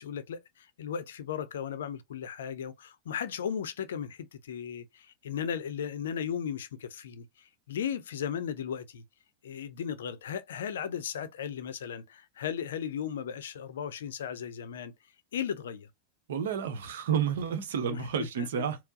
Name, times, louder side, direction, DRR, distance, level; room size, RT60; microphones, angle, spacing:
voice 1, 0.0-9.0 9.4-14.9 15.3-15.9 17.9-18.0 18.4-18.5, left 8 dB, 60° left, 0.5 m, -36 dB
voice 2, 16.3-18.8, right 7 dB, 60° right, 0.8 m, -30 dB
4.3 x 2.0 x 2.5 m
figure-of-eight pair, 90°, 0 cm